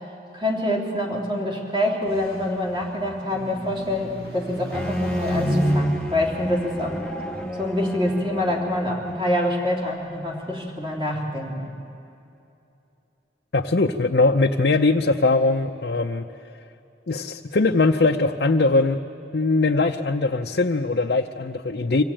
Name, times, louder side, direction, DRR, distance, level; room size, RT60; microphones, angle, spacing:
voice 1, 0.3-7.0 7.5-11.7, left 1 dB, 25° right, -2 dB, 3.0 m, -26 dB
sound 1, 2.0-7.5, right 1 dB, 55° right, 2.3 m, -30 dB
Bowed string instrument, 4.7-9.5, equal, 5° left, 0.7 m, -32 dB
voice 2, 13.5-16.3 17.1-19.0 19.3-22.0, left 3 dB, 65° left, 3 dB, 0.6 m, -21 dB
25.0 x 16.0 x 8.9 m, 2.7 s
head